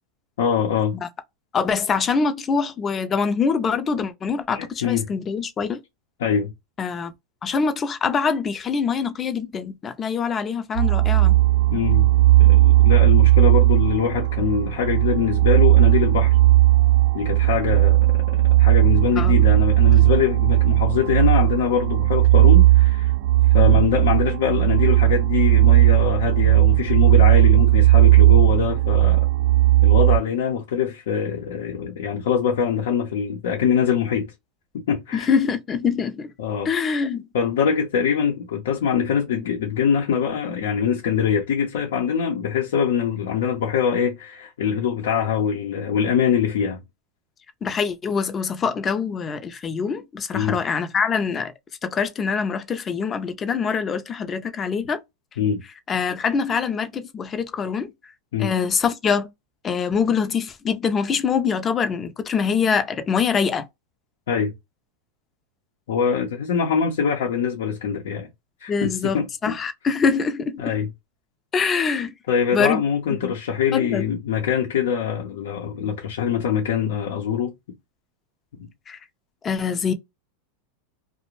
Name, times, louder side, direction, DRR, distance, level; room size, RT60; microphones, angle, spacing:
voice 1, 0.4-1.0 4.5-5.1 6.2-6.5 11.7-12.1 12.4-16.4 17.1-23.1 23.5-29.3 29.8-34.3 34.9-35.3 36.4-36.7 37.3-46.8 50.3-50.6 55.4-55.6 58.3-58.5 64.3-64.5 65.9-68.3 68.6-69.5 70.6-70.9 72.3-77.5 78.6-78.7, left 7 dB, 80° left, 0.7 m, -23 dB
voice 2, 1.5-5.8 6.8-7.1 7.4-11.4 19.2-19.5 23.6-23.8 35.1-36.3 36.6-37.3 47.6-51.5 51.8-55.0 55.9-57.9 58.4-59.3 59.6-63.7 68.7-70.6 71.5-72.1 72.5-72.8 73.2-73.3 73.7-74.0 78.9-79.0 79.4-79.9, left 6 dB, 25° left, 0.5 m, -24 dB
sound 1, 10.8-30.2, right 17 dB, 60° right, 0.3 m, -16 dB
2.5 x 2.1 x 3.0 m
supercardioid pair, 125°, 0 cm